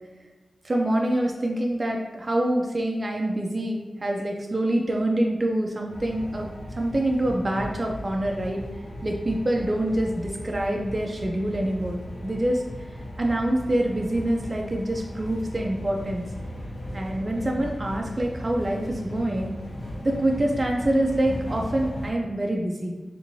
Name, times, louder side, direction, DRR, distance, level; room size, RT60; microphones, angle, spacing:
voice 1, 0.6-8.6 9.0-12.6 13.2-16.2 16.9-19.5 20.0-22.9, right 1 dB, 35° right, 0 dB, 0.4 m, -26 dB
sound 1, 5.9-22.1, equal, 50° left, 0.5 m, -37 dB
3.5 x 2.9 x 2.6 m, 1.2 s
cardioid pair, 65°, 0 cm